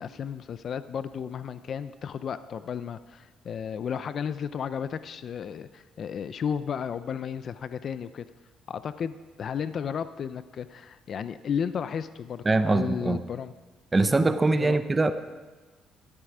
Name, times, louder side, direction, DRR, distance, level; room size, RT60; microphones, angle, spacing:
voice 1, 0.0-8.2 8.7-13.5 14.1-14.2 14.6-14.8, left 7 dB, 45° left, 13 dB, 0.4 m, -33 dB
voice 2, 12.5-13.2 13.9-15.1, right 2 dB, 20° right, 10 dB, 0.6 m, -22 dB
14.0 x 12.5 x 4.9 m, 1.3 s
cardioid pair, 135°, 0 cm